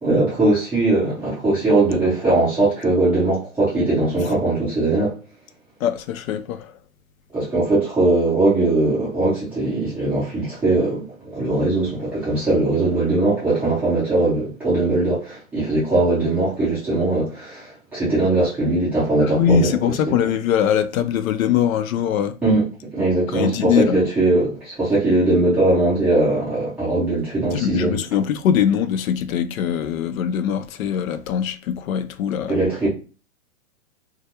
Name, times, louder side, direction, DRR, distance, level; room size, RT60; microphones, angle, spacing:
voice 1, 0.0-5.1 7.3-19.7 22.4-22.7 22.9-28.0 32.5-32.9, right 2 dB, 5° right, 0.4 m, -20 dB
voice 2, 5.8-6.7 19.2-22.4 23.3-24.0 27.5-32.6, left 8 dB, 70° left, 0.5 m, -22 dB
2.3 x 2.2 x 2.8 m
hypercardioid pair, 155°, 42 cm